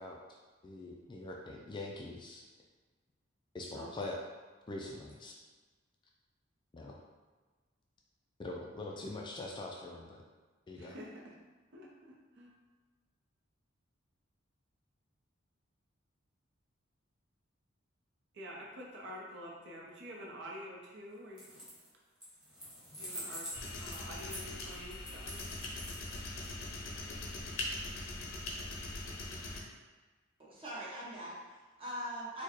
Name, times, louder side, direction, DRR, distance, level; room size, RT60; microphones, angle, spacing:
voice 1, 0.0-2.5 3.5-4.1 4.7-5.3 6.7-7.0 8.4-10.2 10.7-11.0, left 2 dB, 25° left, -1 dB, 0.3 m, -43 dB
voice 2, 10.7-11.1 11.7-12.5 18.3-21.5 23.0-23.5 23.8-25.5, equal, 60° right, -3 dB, 0.7 m, -48 dB
sound 1, 21.3-21.9 22.2-26.5, equal, 5° right, 1.2 m, -46 dB
sound 2, 23.5-29.6, left 2 dB, 80° left, 0.6 m, -41 dB
voice 3, 30.4-32.4, equal, 30° right, -6 dB, 1.0 m, -42 dB
4.4 x 2.2 x 3.0 m, 1.3 s
head